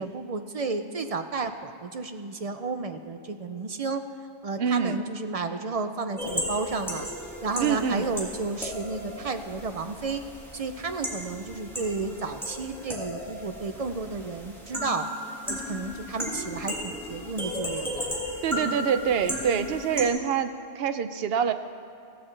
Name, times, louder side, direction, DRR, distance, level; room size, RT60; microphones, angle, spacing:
voice 1, 0.0-4.0 4.4-7.1 7.4-10.2 10.5-15.1 15.5-18.1, right 4 dB, 45° right, 8 dB, 0.5 m, -32 dB
voice 2, 4.6-5.0 7.6-8.1 18.4-21.5, right 7 dB, 70° right, 10 dB, 0.8 m, -26 dB
sound 1, 6.2-20.1, left 1 dB, ahead, 1.9 m, -35 dB
16.0 x 14.5 x 3.3 m, 2.5 s
omnidirectional pair, 1.1 m